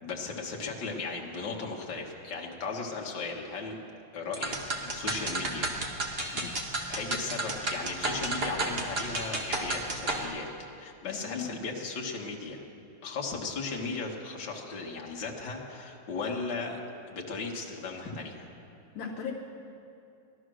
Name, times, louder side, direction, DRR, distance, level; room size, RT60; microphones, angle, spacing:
voice 1, 0.0-3.8 4.1-4.5 4.8-5.7 6.2-6.6 6.9-10.5 10.8-12.7 13.0-16.8 17.1-18.5, left 4 dB, 60° left, 0 dB, 2.1 m, -36 dB
sound 1, 4.3-10.3, right 2 dB, 30° right, 1.4 m, -32 dB
voice 2, 11.0-11.5 19.0-19.3, left 7 dB, 80° left, -1 dB, 1.9 m, -37 dB
17.5 x 12.5 x 6.3 m, 2.6 s
omnidirectional pair, 2.2 m